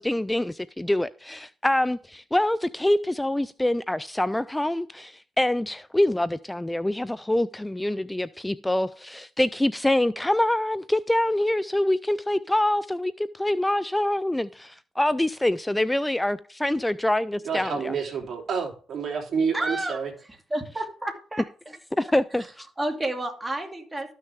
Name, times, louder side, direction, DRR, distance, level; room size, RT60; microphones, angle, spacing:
voice 1, 0.0-17.9 22.0-22.7, left 1 dB, 10° left, 0.4 m, -25 dB
voice 2, 17.4-20.1, right 6 dB, 55° right, 3.2 m, -29 dB
voice 3, 19.5-20.0 20.5-21.8 22.4-22.5 22.8-24.1, right 1 dB, 15° right, 2.4 m, -31 dB
13.0 x 6.5 x 3.5 m
cardioid pair, 90°, 0 cm